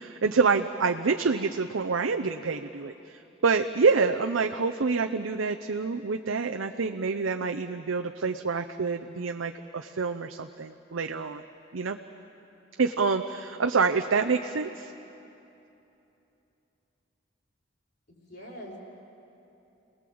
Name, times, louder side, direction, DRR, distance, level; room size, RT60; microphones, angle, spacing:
voice 1, 0.0-11.4 11.7-12.0 12.8-14.9, right 4 dB, 90° right, 5 dB, 0.7 m, -27 dB
voice 2, 18.1-18.8, equal, 50° left, -3 dB, 5.3 m, -43 dB
30.0 x 20.0 x 7.8 m, 2.9 s
head